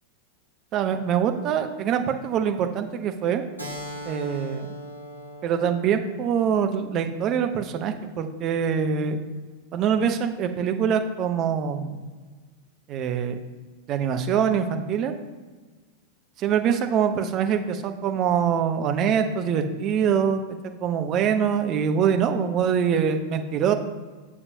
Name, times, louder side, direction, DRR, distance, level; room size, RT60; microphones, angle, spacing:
voice 1, 0.7-3.4 4.0-4.7 5.4-9.2 9.7-12.0 12.9-13.4 13.9-15.1 16.4-20.4 20.8-23.7, right 7 dB, 35° right, 6 dB, 0.7 m, -24 dB
Keyboard (musical), 3.6-8.7, equal, 90° right, 1.3 m, -41 dB
8.4 x 6.9 x 2.7 m, 1.4 s
figure-of-eight pair, 90°, 0 cm